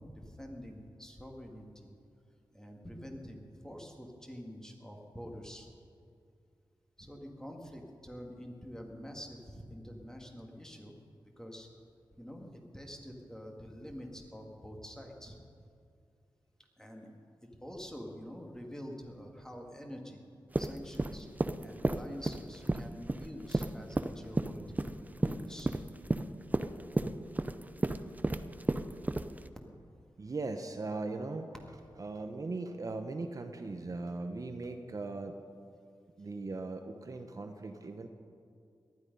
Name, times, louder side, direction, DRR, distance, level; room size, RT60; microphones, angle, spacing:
voice 1, 0.0-2.0 2.5-5.7 7.0-10.9 11.4-11.7 12.1-15.4 16.8-17.1 17.6-20.2 20.6-25.0 25.2-25.8, equal, 5° left, 1 dB, 2.1 m, -46 dB
sound 1, 20.5-29.5, right 2 dB, 20° right, 0.6 m, -32 dB
voice 2, 30.2-31.5 32.0-35.4 36.2-38.1, right 3 dB, 45° right, 6 dB, 0.8 m, -39 dB
18.5 x 12.5 x 5.4 m, 2.4 s
wide cardioid pair, 110°, 8 cm